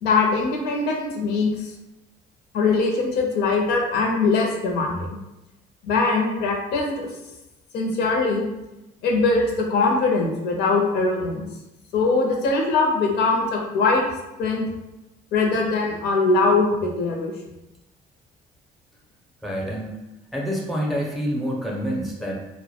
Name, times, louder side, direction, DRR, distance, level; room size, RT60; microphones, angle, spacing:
voice 1, 0.0-1.7 2.5-5.2 5.8-7.1 7.7-8.5 9.0-11.5 11.9-14.0 14.4-14.7 15.3-17.3, left 3 dB, 75° left, 1 dB, 0.6 m, -21 dB
voice 2, 19.4-20.0 20.3-22.4, equal, ahead, -2 dB, 0.5 m, -27 dB
2.1 x 2.1 x 2.8 m, 0.94 s
cardioid pair, 110°, 17 cm